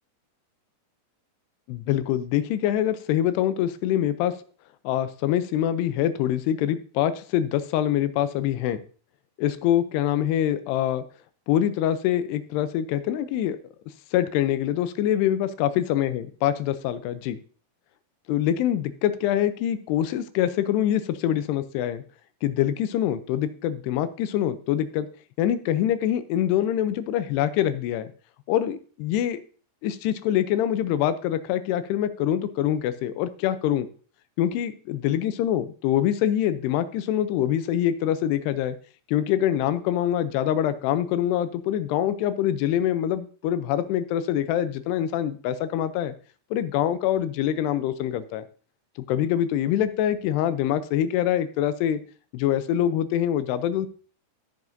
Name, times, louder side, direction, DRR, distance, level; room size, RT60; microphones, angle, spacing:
voice 1, 1.7-4.3 4.8-8.8 9.4-11.0 11.5-13.6 14.1-17.4 18.3-22.0 22.4-25.1 25.4-28.1 28.5-29.4 29.8-33.9 34.4-38.8 39.1-46.1 46.5-48.4 49.1-52.0 52.3-53.9, left 11 dB, 90° left, 12 dB, 2.8 m, -24 dB
14.5 x 7.0 x 2.6 m, 0.40 s
omnidirectional pair, 4.6 m